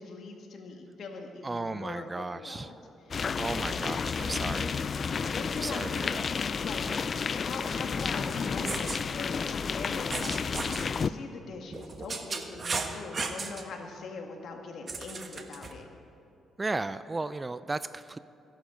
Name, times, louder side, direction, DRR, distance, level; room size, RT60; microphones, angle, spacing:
voice 1, 0.0-2.1 2.3-2.8 3.6-3.9 5.2-6.4 6.6-6.8 7.3-10.4 10.8-15.9, left 4 dB, 65° left, 3 dB, 1.8 m, -42 dB
voice 2, 1.4-2.7 3.4-4.9 5.5-6.3 12.9-13.0 16.6-18.2, right 3 dB, 20° right, 14 dB, 0.4 m, -35 dB
sound 1, 3.1-11.1, left 5 dB, 45° left, 0.4 m, -31 dB
sound 2, 8.5-9.0 10.1-10.9 11.7-13.6 14.9-15.7, right 4 dB, 40° right, 1.2 m, -35 dB
16.0 x 11.5 x 5.1 m, 2.7 s
cardioid pair, 90°, 0 cm